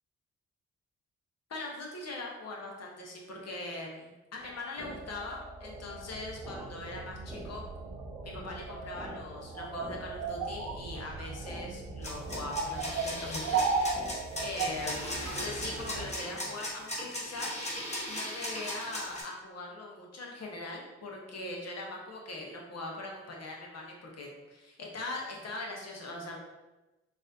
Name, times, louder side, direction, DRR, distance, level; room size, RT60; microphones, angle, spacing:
voice 1, 1.5-7.6 8.2-13.6 14.4-17.6 18.1-26.4, left 2 dB, 55° left, -1 dB, 1.0 m, -41 dB
sound 1, 4.4-14.2, right 1 dB, 5° right, 0.4 m, -47 dB
sound 2, 5.7-16.1, right 4 dB, 75° right, 0.6 m, -36 dB
sound 3, 12.0-19.2, left 1 dB, 20° left, 1.1 m, -37 dB
4.0 x 2.6 x 2.6 m, 1.1 s
supercardioid pair, 50°, 31 cm